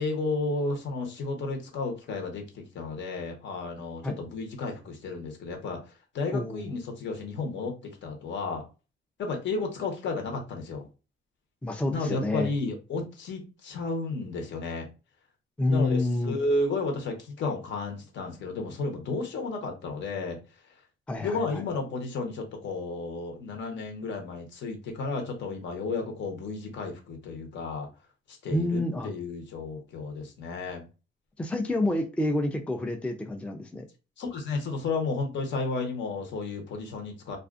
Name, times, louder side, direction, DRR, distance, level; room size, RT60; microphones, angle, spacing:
voice 1, 0.0-8.6 9.2-10.9 11.9-14.9 15.7-20.4 21.2-27.9 28.3-30.8 34.2-37.4, left 3 dB, 65° left, 3 dB, 1.0 m, -32 dB
voice 2, 6.3-6.7 11.6-12.5 15.6-16.4 21.1-21.6 28.5-29.1 31.4-33.8, left 1 dB, 5° left, 4 dB, 0.4 m, -28 dB
2.4 x 2.4 x 2.4 m, 0.31 s
cardioid pair, 90°, 20 cm